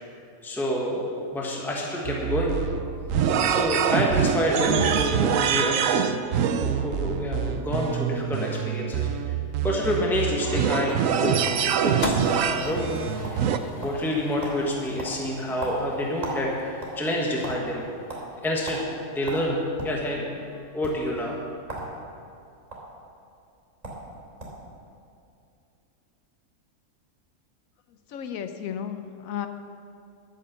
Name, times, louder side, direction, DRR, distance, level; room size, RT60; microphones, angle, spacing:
voice 1, 0.4-1.1 1.3-2.6 3.5-6.2 6.6-9.3 9.6-12.1 12.4-12.9 13.8-17.8 18.4-19.6 19.8-21.4, left 1 dB, ahead, -2 dB, 1.2 m, -28 dB
sound 1, 2.0-13.6, right 8 dB, 70° right, 1.0 m, -25 dB
sound 2, 10.9-11.7 12.0-12.2 12.6-12.8 13.1-13.6 13.8-14.1 14.4-14.6 15.0-16.4 16.7-17.6 18.1-18.2 18.7-18.8 19.3-20.0 20.7-20.9 21.6-21.9 22.2-22.8 23.5-23.6 23.8-24.0 24.4-24.7, right 2 dB, 30° right, 2.8 m, -36 dB
sound 3, 12.0-18.3, left 3 dB, 40° left, 0.7 m, -38 dB
voice 2, 28.1-29.5, left 8 dB, 75° left, 8 dB, 1.1 m, -33 dB
11.5 x 7.4 x 6.9 m, 2.5 s
omnidirectional pair, 1.5 m